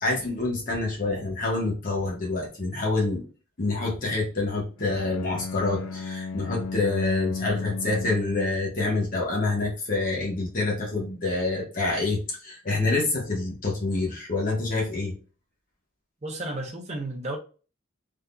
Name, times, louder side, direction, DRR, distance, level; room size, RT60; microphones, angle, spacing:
voice 1, 0.0-3.2 3.6-15.2, left 2 dB, 40° left, 1.0 m, -27 dB
Bowed string instrument, 4.8-8.8, left 4 dB, 65° left, 0.4 m, -35 dB
voice 2, 16.2-17.4, right 2 dB, 30° right, 0.7 m, -33 dB
3.5 x 2.7 x 2.2 m
head